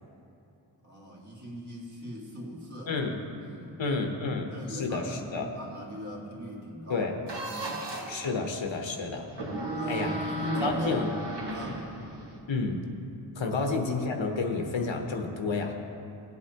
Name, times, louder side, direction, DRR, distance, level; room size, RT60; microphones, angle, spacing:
voice 1, 0.8-2.9 3.3-3.8 4.5-7.1 7.5-7.9 9.7-11.2 11.5-11.9 13.4-13.5, equal, 40° right, -4 dB, 1.9 m, -40 dB
voice 2, 2.9-3.2 3.8-5.5 6.9-7.1 8.1-9.3 9.9-10.2 10.6-11.1 12.5-12.8 13.4-15.7, left 3 dB, 85° left, 3 dB, 1.0 m, -30 dB
sound 1, 7.3-8.2 9.3-12.4, right 1 dB, 65° right, 1.5 m, -34 dB
16.5 x 8.0 x 2.9 m, 2.7 s
wide cardioid pair, 90°, 45 cm